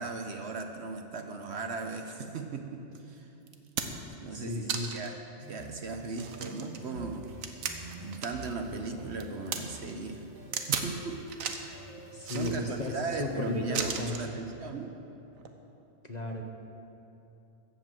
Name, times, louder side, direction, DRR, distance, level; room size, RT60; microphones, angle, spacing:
voice 1, 0.0-3.3 4.2-5.1 5.4-7.2 8.0-10.3 10.7-11.2 11.6-11.8 12.3-14.9, right 4 dB, 55° right, 5 dB, 1.1 m, -37 dB
sound 1, 3.0-3.1 3.5-4.1 4.7-5.2 5.6-5.7 6.1-8.5 8.8-9.6 10.5-10.9 11.3-11.7 12.2-12.9 13.7-14.3 15.4-15.5, right 6 dB, 80° right, 1.3 m, -35 dB
voice 2, 4.3-4.9 12.1-14.4 16.0-16.4, left 2 dB, 35° left, 2 dB, 1.0 m, -35 dB
sound 2, 5.4-14.0, right 2 dB, 35° right, 1.3 m, -47 dB
13.5 x 8.2 x 7.6 m, 2.9 s
omnidirectional pair, 1.4 m